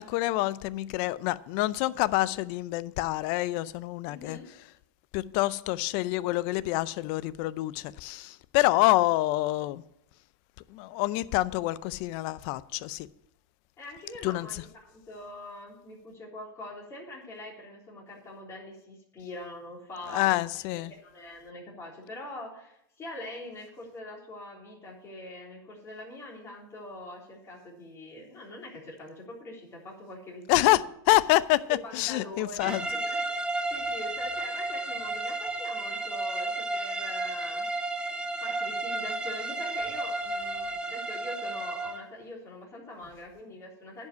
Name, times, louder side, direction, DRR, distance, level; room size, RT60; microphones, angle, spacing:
voice 1, 0.0-4.4 5.1-9.8 10.7-13.1 14.2-14.6 20.1-20.9 30.5-32.9, left 18 dB, 50° left, 0.5 m, -27 dB
voice 2, 4.0-4.5 13.8-20.6 21.0-30.8 31.7-37.7 38.4-44.1, left 1 dB, 25° left, 3.7 m, -43 dB
sound 1, 32.6-42.1, right 2 dB, 10° right, 0.8 m, -32 dB
10.5 x 5.4 x 8.0 m
supercardioid pair, 135°, 12 cm